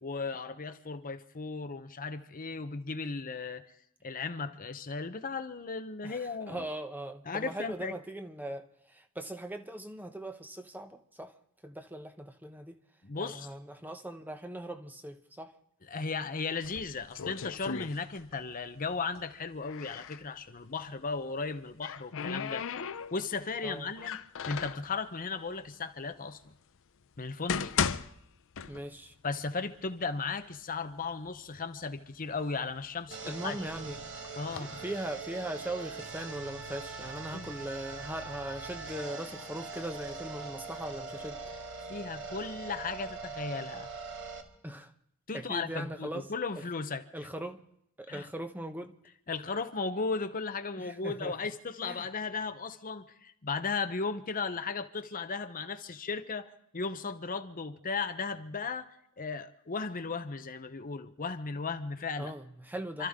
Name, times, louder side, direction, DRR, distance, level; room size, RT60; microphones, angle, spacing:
voice 1, 0.0-3.6 4.0-6.7 7.3-8.0 13.0-13.5 15.9-24.2 24.4-26.5 27.2-27.7 29.2-33.6 34.4-34.7 37.3-37.5 41.9-43.9 45.3-47.1 48.1-48.3 49.3-62.3 63.0-63.1, left 4 dB, 40° left, 0.9 m, -36 dB
voice 2, 6.0-11.3 11.6-12.8 13.2-15.5 23.6-23.9 28.7-29.1 33.2-34.0 34.6-41.4 44.6-44.9 45.3-46.3 47.1-47.6 48.0-49.0 50.8-51.4 51.8-52.1 62.2-63.1, right 1 dB, 10° right, 1.0 m, -40 dB
sound 1, 16.6-18.5 18.8-20.2 21.4-23.4 24.0-24.9 25.7-25.8 26.4-26.5 27.2-29.1 29.5-29.6 30.3-30.4 30.7-31.4 31.9-33.6 34.2-34.6, left 6 dB, 60° left, 0.6 m, -36 dB
sound 2, 33.1-44.4, right 4 dB, 60° right, 2.2 m, -42 dB
28.5 x 13.5 x 3.7 m
head